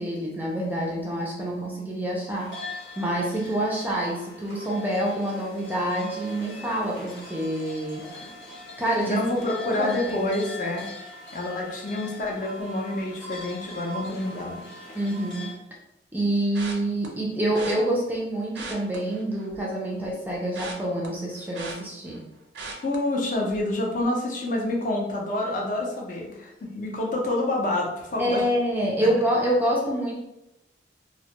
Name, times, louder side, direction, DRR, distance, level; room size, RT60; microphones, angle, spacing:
voice 1, 0.0-2.5 3.0-8.1 8.8-9.2 9.6-10.3 14.9-15.5 16.1-22.2 28.2-30.1, right 1 dB, 10° right, -3 dB, 0.3 m, -27 dB
sound 1, 2.3-15.5, left 1 dB, 90° left, 0.9 m, -41 dB
voice 2, 9.0-10.9 11.3-14.6 22.8-28.4 29.0-29.1, left 2 dB, 45° left, -1 dB, 0.5 m, -28 dB
sound 2, 16.5-17.1 17.5-17.8 18.4-19.7 20.0-22.2 22.5-23.0 23.4-23.7 24.0-24.1, right 3 dB, 85° right, 0.5 m, -39 dB
2.2 x 2.0 x 2.8 m, 0.87 s
head